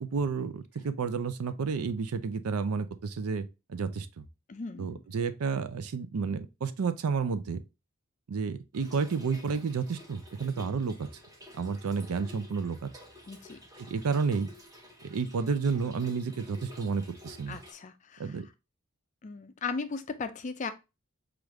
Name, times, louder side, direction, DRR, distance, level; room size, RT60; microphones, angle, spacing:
voice 1, 0.0-4.2 4.8-7.6 8.3-11.1 11.5-12.9 13.8-14.5 15.0-17.6 18.2-18.5, right 5 dB, 85° right, 0.5 m, -31 dB
voice 2, 4.5-5.0 13.3-13.6 17.5-18.3 19.2-20.7, left 4 dB, 35° left, 0.4 m, -37 dB
Trickle dribble / Fill (with liquid), 8.7-17.7, left 1 dB, 15° right, 0.7 m, -51 dB
4.9 x 2.5 x 3.0 m
head